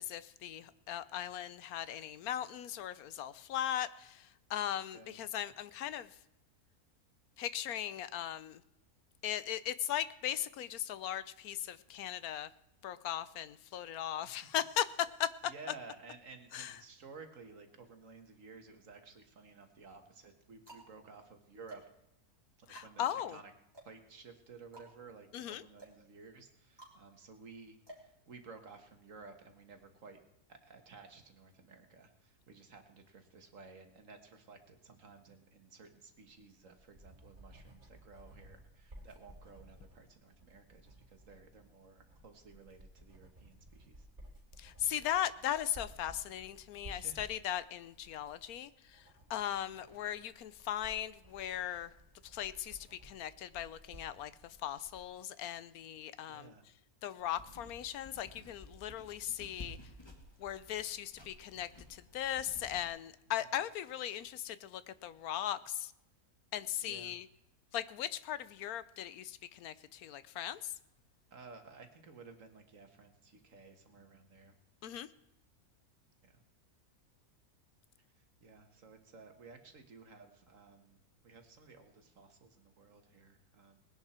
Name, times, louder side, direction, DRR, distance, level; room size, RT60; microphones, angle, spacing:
voice 1, 0.0-6.1 7.4-8.6 9.2-12.5 12.8-14.9 15.2-15.3 16.5-16.7 22.7-23.4 25.3-25.6 44.6-49.0 49.3-51.9 52.3-54.3 54.6-56.5 57.0-59.8 60.4-65.9 66.5-67.3 67.7-70.7 74.8-75.1, left 11 dB, 80° left, 15 dB, 1.1 m, -38 dB
voice 2, 15.4-21.8 22.7-23.5 23.8-30.2 30.5-44.1 46.8-47.2 49.7-50.0 56.3-56.7 66.8-67.2 71.3-74.5 76.2-76.4 78.2-81.0 81.2-83.8, right 4 dB, 60° right, 6 dB, 1.8 m, -55 dB
sound 1, 18.7-19.4 20.1-28.9, right 1 dB, 15° right, 3.4 m, -58 dB
Writing, 36.4-55.1, right 1 dB, 35° right, 4.5 m, -57 dB
sound 2, 57.2-62.9, left 1 dB, 15° left, 1.9 m, -54 dB
19.5 x 10.5 x 4.4 m, 0.83 s
omnidirectional pair, 1.6 m